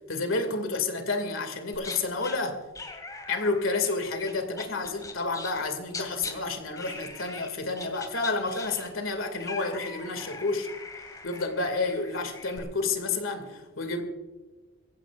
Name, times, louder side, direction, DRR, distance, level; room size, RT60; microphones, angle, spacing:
voice 1, 0.1-2.6 3.3-10.7 11.2-14.0, left 3 dB, 90° left, 7 dB, 2.3 m, -30 dB
sound 1, 1.7-2.4 2.8-6.3 6.8-7.5 7.8-12.6, left 3 dB, 20° left, 2.3 m, -41 dB
23.0 x 15.5 x 2.5 m, 1.2 s
head